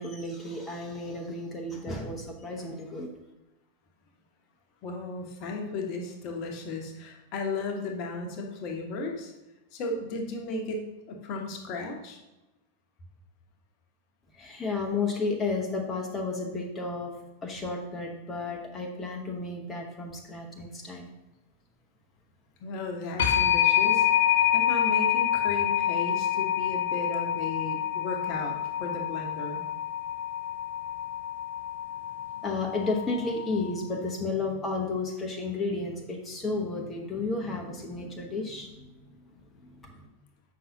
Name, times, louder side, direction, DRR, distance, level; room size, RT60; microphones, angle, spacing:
voice 1, 0.0-3.1 14.3-17.1 17.4-21.1 32.4-39.1 39.6-40.1, left 3 dB, 15° left, 0 dB, 0.9 m, -32 dB
voice 2, 4.8-9.3 9.7-12.2 22.6-29.6, left 2 dB, 40° left, 3 dB, 1.0 m, -35 dB
sound 1, 23.2-33.8, left 10 dB, 60° left, 0.6 m, -27 dB
7.5 x 5.5 x 2.8 m, 0.99 s
figure-of-eight pair, 90°, 0 cm